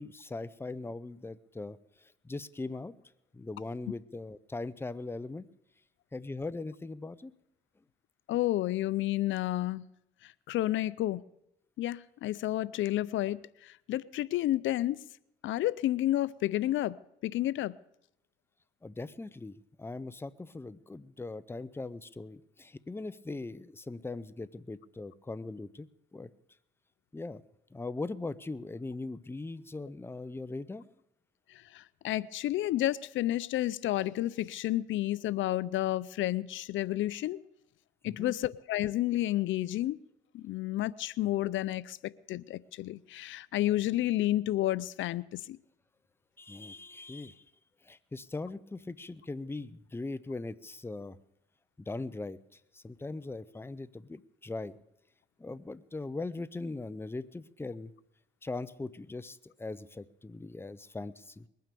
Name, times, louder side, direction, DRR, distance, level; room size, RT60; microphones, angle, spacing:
voice 1, 0.0-1.8 2.2-2.9 3.3-5.5 6.1-7.3 18.8-26.3 27.1-27.4 27.7-30.9 38.1-38.3 46.4-47.4 47.8-51.2 51.9-52.4 52.7-54.7 55.4-57.9 58.4-61.5, left 3 dB, 10° left, 0.6 m, -40 dB
voice 2, 8.3-9.8 10.5-11.2 11.8-15.0 15.4-17.0 17.2-17.7 31.7-37.4 38.0-40.0 40.3-45.6, left 14 dB, 75° left, 0.5 m, -31 dB
21.0 x 9.4 x 6.8 m
cardioid pair, 90°, 20 cm